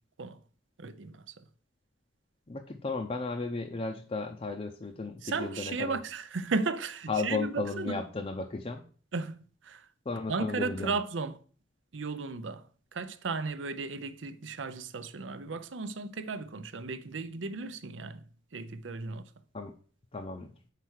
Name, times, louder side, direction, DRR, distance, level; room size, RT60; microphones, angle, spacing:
voice 1, 0.8-1.2 5.2-8.0 9.1-9.4 9.7-9.8 10.3-11.4 11.9-12.6 12.9-18.2 18.5-19.2, right 4 dB, 75° right, 0.6 m, -35 dB
voice 2, 2.5-6.0 7.1-8.8 10.1-10.9 19.5-19.7 20.1-20.5, left 3 dB, 30° left, 0.6 m, -34 dB
5.8 x 4.6 x 6.4 m
head